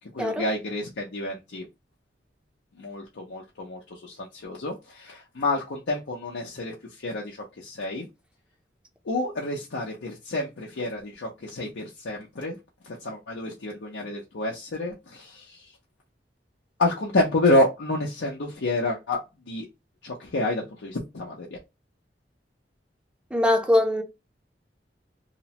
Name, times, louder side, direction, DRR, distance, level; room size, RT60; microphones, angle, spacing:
voice 1, 0.1-1.7 2.8-8.1 9.0-12.6 12.8-15.7 16.8-19.2 19.5-19.7 20.0-21.6, left 2 dB, 85° left, 0.6 m, -29 dB
voice 2, 23.3-24.0, left 1 dB, 5° right, 0.4 m, -22 dB
2.8 x 2.1 x 2.8 m
head